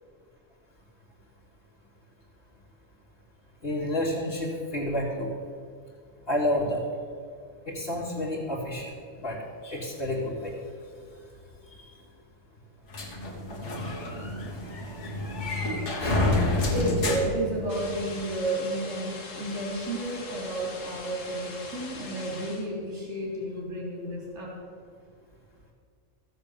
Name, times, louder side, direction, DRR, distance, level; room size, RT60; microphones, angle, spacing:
voice 1, 3.6-5.3 6.3-6.8 7.7-8.9 9.2-10.6 16.0-16.2, left 1 dB, 50° left, -7 dB, 2.2 m, -30 dB
sound 1, 12.9-18.2, left 2 dB, 70° left, 1.8 m, -29 dB
voice 2, 16.5-24.6, right 1 dB, 75° right, -3 dB, 3.2 m, -32 dB
sound 2, 17.7-22.7, left 3 dB, 90° left, 1.8 m, -42 dB
14.0 x 7.6 x 6.9 m, 2.2 s
omnidirectional pair, 1.3 m